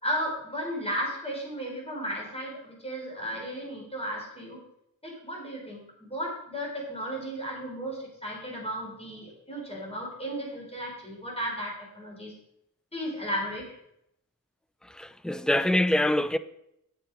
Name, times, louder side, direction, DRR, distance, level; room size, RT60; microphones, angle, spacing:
voice 1, 0.0-4.6 5.0-12.3 12.9-13.7, equal, 15° left, 4.7 m, -34 dB
voice 2, 14.8-16.4, left 1 dB, ahead, 0.5 m, -25 dB
9.1 x 8.0 x 5.0 m
wide cardioid pair, 65°, 34 cm